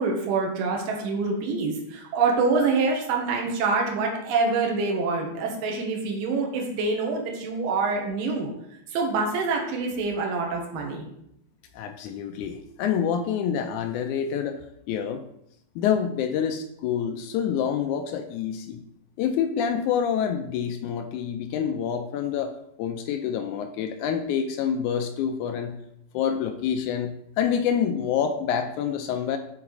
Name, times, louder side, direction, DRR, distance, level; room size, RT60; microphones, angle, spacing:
voice 1, 0.0-8.5 8.9-11.1, right 4 dB, 85° right, 0 dB, 2.7 m, -26 dB
voice 2, 11.7-14.6 14.9-15.2 15.8-18.8 19.2-22.5 22.8-25.7 26.1-29.4, left 8 dB, 85° left, 6 dB, 1.7 m, -27 dB
7.0 x 3.8 x 4.7 m, 0.76 s
omnidirectional pair, 3.9 m